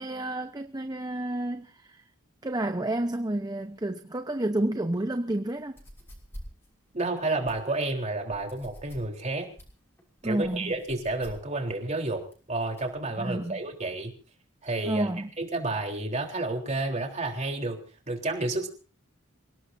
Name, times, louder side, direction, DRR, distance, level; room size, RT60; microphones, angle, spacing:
voice 1, 0.0-2.0 2.4-5.8 10.2-10.7 13.2-13.6 14.8-15.3, right 1 dB, 20° right, 0.8 m, -30 dB
sound 1, 5.7-13.0, equal, 15° left, 6.0 m, -48 dB
voice 2, 6.9-9.5 10.2-14.1 14.6-15.1 15.4-17.8 18.1-18.7, right 2 dB, 35° right, 3.7 m, -30 dB
28.5 x 17.5 x 2.7 m
head